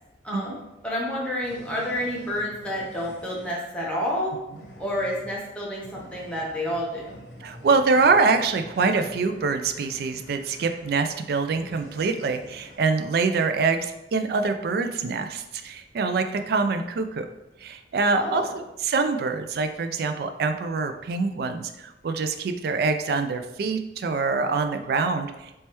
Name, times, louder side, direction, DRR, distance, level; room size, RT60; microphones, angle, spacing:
voice 1, 0.2-4.4 4.8-7.1 18.1-18.5, equal, 5° left, -5 dB, 0.8 m, -29 dB
sound 1, 1.4-3.6 4.5-12.8, equal, 70° left, 0.9 m, -47 dB
voice 2, 7.4-17.3 17.6-25.6, right 4 dB, 55° right, 7 dB, 0.3 m, -25 dB
3.3 x 3.2 x 2.9 m, 0.95 s
head